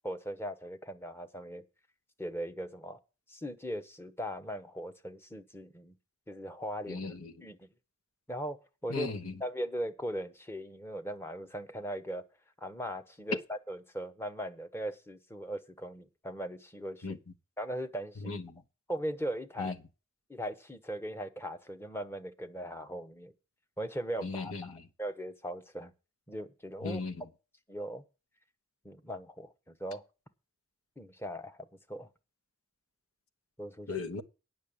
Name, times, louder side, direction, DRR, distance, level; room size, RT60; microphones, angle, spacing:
voice 1, 0.0-1.6 2.2-3.0 3.3-5.9 6.3-7.1 7.4-7.6 8.3-9.1 9.4-12.2 12.6-17.2 17.6-18.2 18.9-19.7 20.3-23.3 23.8-25.9 26.3-27.0 27.7-28.0 28.8-30.0 31.0-32.1 33.6-33.9, equal, 10° left, 1.0 m, -39 dB
voice 2, 6.9-7.4 8.9-9.4 17.0-17.2 18.2-18.6 19.6-19.8 24.2-24.8 26.8-27.3 33.9-34.2, left 3 dB, 85° left, 1.2 m, -37 dB
9.4 x 6.1 x 8.6 m
head